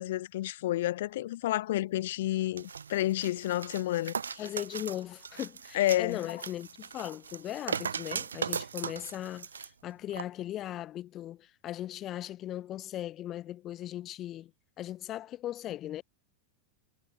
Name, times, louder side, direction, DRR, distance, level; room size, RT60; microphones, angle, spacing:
voice 1, 0.0-4.5 5.7-6.3, left 15 dB, 55° left, 0.5 m, -30 dB
sound 1, 2.6-9.7 10.1-10.2, right 6 dB, 70° right, 0.4 m, -38 dB
voice 2, 4.4-14.5 14.8-16.0, left 13 dB, 30° left, 2.7 m, -38 dB
figure-of-eight pair, 90°, 0 cm